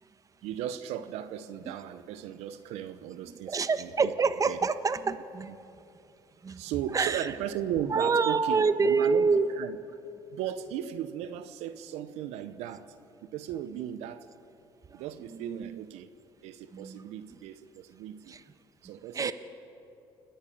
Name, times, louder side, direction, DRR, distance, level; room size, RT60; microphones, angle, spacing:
voice 1, 0.4-3.9 4.5-4.6 5.5-5.6 6.6-9.8 10.3-12.9 13.2-14.3 14.9-16.1 16.4-18.3 18.8-19.3, right 10 dB, 80° right, 12 dB, 0.8 m, -36 dB
voice 2, 3.3-5.5 6.4-6.6 6.9-7.3 7.9-9.5 14.9-15.0 15.3-15.8 16.7-17.0 18.3-18.4 19.1-19.3, right 4 dB, 30° right, 12 dB, 1.1 m, -27 dB
29.5 x 10.5 x 9.0 m, 2.8 s
supercardioid pair, 80°, 11 cm